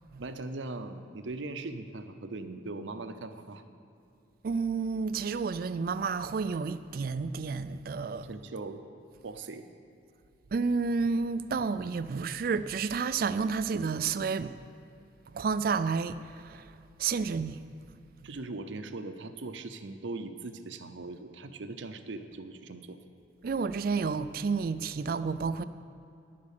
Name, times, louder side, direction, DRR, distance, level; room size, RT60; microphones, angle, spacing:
voice 1, 0.2-3.6 8.2-8.8 9.2-9.7 18.2-23.0, right 3 dB, 80° right, 0.7 m, -40 dB
voice 2, 4.4-8.3 10.5-14.5 15.3-16.7 17.0-17.6 18.2-18.3 23.4-25.6, right 5 dB, 50° right, 0.3 m, -30 dB
10.5 x 8.5 x 6.6 m
head